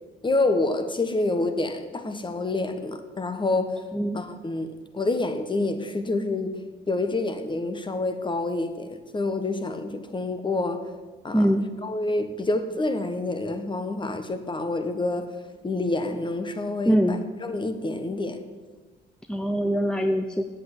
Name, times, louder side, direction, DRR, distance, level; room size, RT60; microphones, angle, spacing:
voice 1, 0.2-3.8 4.1-10.8 11.2-15.3 15.6-18.4, left 2 dB, 25° left, 9 dB, 1.1 m, -28 dB
voice 2, 11.3-11.7 16.9-17.2 19.3-20.4, equal, 5° left, 6 dB, 0.6 m, -23 dB
8.3 x 7.7 x 8.2 m, 1.3 s
cardioid pair, 105°, 20 cm